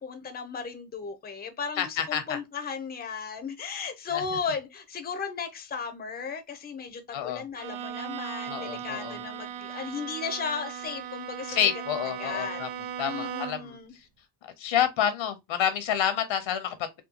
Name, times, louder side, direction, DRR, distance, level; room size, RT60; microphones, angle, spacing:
voice 1, 0.0-11.6 12.2-12.6 13.0-13.9, left 5 dB, 20° left, 0.6 m, -35 dB
voice 2, 1.8-2.4 4.1-4.2 7.1-7.4 8.5-9.2 11.5-12.7 13.0-13.8 14.4-16.9, left 9 dB, 90° left, 0.9 m, -28 dB
Bowed string instrument, 7.5-13.8, right 9 dB, 90° right, 0.5 m, -37 dB
3.6 x 2.3 x 2.8 m
cardioid pair, 130°, 45 cm